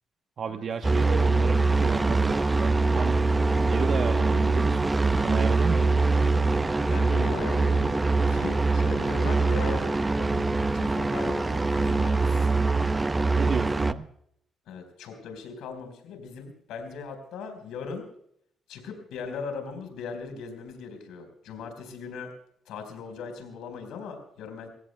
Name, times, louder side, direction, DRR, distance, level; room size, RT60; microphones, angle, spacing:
voice 1, 0.4-3.2 3.7-4.9 5.2-6.0 13.4-14.1, right 6 dB, 55° right, 6 dB, 1.0 m, -33 dB
sound 1, 0.8-13.9, right 3 dB, 20° right, 0.7 m, -23 dB
voice 2, 6.8-8.0 8.3-12.5 14.7-18.1 18.7-22.3 22.7-24.7, left 5 dB, 85° left, 6 dB, 4.4 m, -39 dB
26.0 x 16.5 x 2.2 m, 0.69 s
cardioid pair, 90°, 0 cm